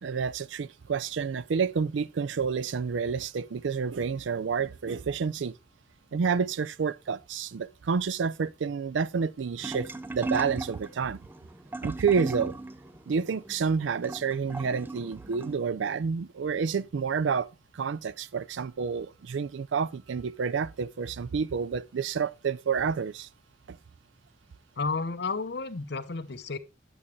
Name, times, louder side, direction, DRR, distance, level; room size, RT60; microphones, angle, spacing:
voice 1, 0.0-5.5 6.1-11.2 11.8-12.6 13.1-17.5 17.7-23.3 23.7-23.8, right 6 dB, 80° right, 0.4 m, -29 dB
sound 1, 9.6-15.6, right 2 dB, 10° right, 0.4 m, -38 dB
voice 2, 24.8-26.6, left 4 dB, 60° left, 0.8 m, -32 dB
8.8 x 8.5 x 3.0 m
head